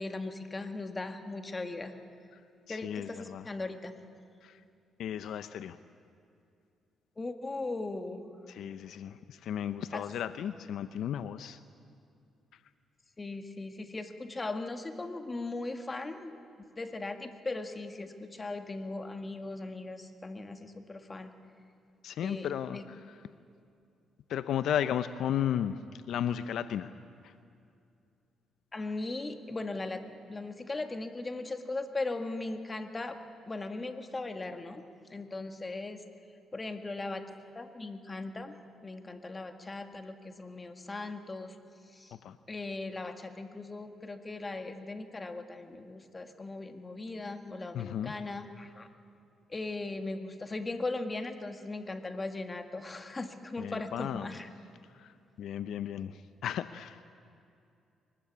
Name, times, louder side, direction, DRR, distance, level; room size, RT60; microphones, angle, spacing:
voice 1, 0.0-1.9 2.7-4.0 7.2-8.3 9.9-10.1 13.2-16.4 16.8-21.3 22.2-22.8 28.7-30.0 30.3-33.2 33.5-34.8 35.1-36.0 36.5-37.3 37.6-38.5 38.8-41.6 41.9-42.2 42.5-48.9 49.5-54.5, left 2 dB, 25° left, 7 dB, 1.9 m, -38 dB
voice 2, 2.7-3.5 4.4-4.6 5.0-5.8 8.5-11.6 22.0-23.2 24.3-26.9 27.2-27.3 42.1-42.4 47.7-48.1 53.6-54.4 54.9-57.0, left 10 dB, 75° left, 12 dB, 0.6 m, -35 dB
23.0 x 20.0 x 8.6 m, 2.5 s
cardioid pair, 90°, 0 cm